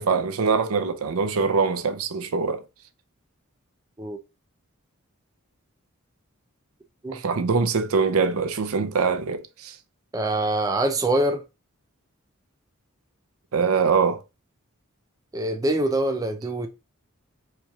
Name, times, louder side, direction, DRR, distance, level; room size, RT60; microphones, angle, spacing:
voice 1, 0.0-2.6 7.1-9.8 13.5-14.2, right 5 dB, 85° right, 0.5 m, -23 dB
voice 2, 10.1-11.4 15.3-16.7, right 1 dB, 15° right, 0.4 m, -24 dB
4.5 x 2.9 x 2.3 m
head